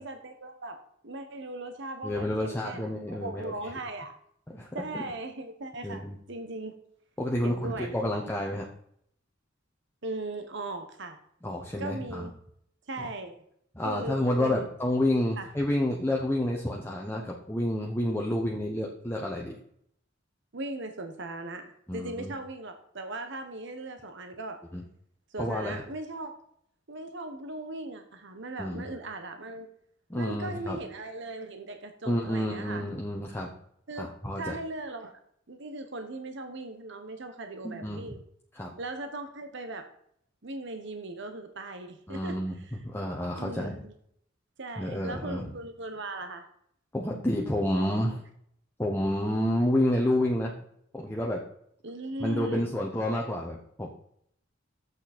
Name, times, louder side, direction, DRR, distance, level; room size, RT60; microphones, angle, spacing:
voice 1, 0.0-4.1 4.7-6.0 6.3-6.7 7.4-7.9 10.0-11.2 11.8-12.3 12.9-13.4 13.8-14.7 15.4-15.5 20.5-24.6 25.3-26.3 26.9-29.7 30.1-32.8 33.9-35.1 35.5-38.2 38.8-39.9 40.4-42.8 43.3-43.9 44.6-46.5 51.8-52.7, right 2 dB, 65° right, 7 dB, 1.1 m, -38 dB
voice 2, 2.0-3.5 4.5-4.7 4.9-5.0 5.8-6.2 7.2-8.7 11.4-12.3 13.7-19.6 21.9-22.3 24.7-24.8 25.4-25.8 28.6-28.9 30.1-30.8 32.1-33.5 34.0-34.5 37.6-38.0 38.5-38.7 42.1-43.8 44.8-45.5 46.9-48.2 48.8-50.5 50.9-51.4 52.2-53.9, left 1 dB, 10° left, -2 dB, 1.1 m, -29 dB
11.5 x 8.1 x 4.4 m, 0.69 s
head